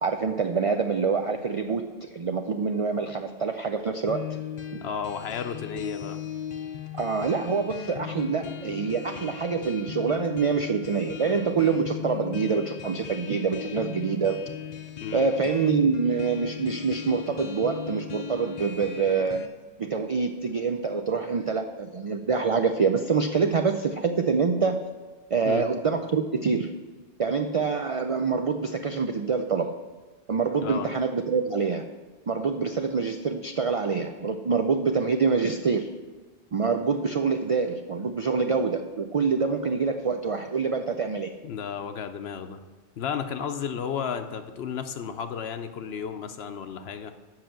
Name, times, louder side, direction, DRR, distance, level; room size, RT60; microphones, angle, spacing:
voice 1, 0.0-4.3 6.9-14.5 15.1-19.4 19.8-24.8 25.3-26.7 27.2-29.7 30.3-31.8 32.3-35.9 36.5-41.3, right 5 dB, 60° right, 6 dB, 0.3 m, -26 dB
sound 1, 4.1-19.5, left 8 dB, 45° left, 0.6 m, -38 dB
voice 2, 4.8-6.2 15.0-15.3 25.4-25.6 30.6-30.9 41.4-42.6 43.0-47.1, left 7 dB, 70° left, 8 dB, 0.9 m, -33 dB
7.6 x 5.7 x 7.5 m, 1.3 s
omnidirectional pair, 1.1 m